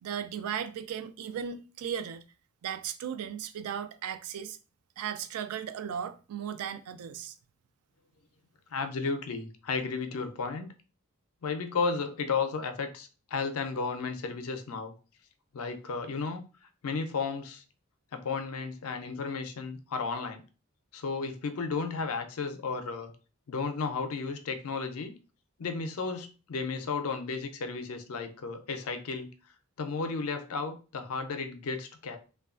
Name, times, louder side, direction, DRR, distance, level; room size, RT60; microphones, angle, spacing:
voice 1, 0.0-2.3 2.6-4.6 5.0-7.4, right 8 dB, 90° right, 0.3 m, -36 dB
voice 2, 8.7-10.7 11.4-14.9 15.5-16.4 16.8-17.6 18.1-20.4 20.9-23.1 23.5-25.1 25.6-29.3 29.8-32.2, left 4 dB, 80° left, 0.4 m, -33 dB
3.0 x 2.3 x 2.4 m
head